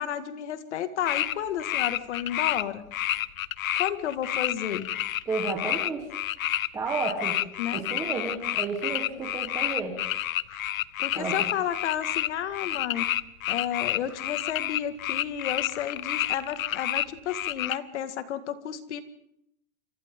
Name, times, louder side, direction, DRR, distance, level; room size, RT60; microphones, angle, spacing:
voice 1, 0.0-2.8 3.8-4.9 7.6-7.9 11.0-13.1 13.5-19.0, left 10 dB, 55° left, 10 dB, 2.0 m, -32 dB
sound 1, 1.1-1.3 1.6-2.6 2.9-17.8, left 13 dB, 80° left, 1.0 m, -29 dB
voice 2, 5.3-6.0 6.7-7.4 7.7-10.0 11.1-11.3, right 4 dB, 10° right, 0 dB, 1.3 m, -31 dB
29.0 x 26.0 x 3.8 m, 0.76 s
supercardioid pair, 180°, 41 cm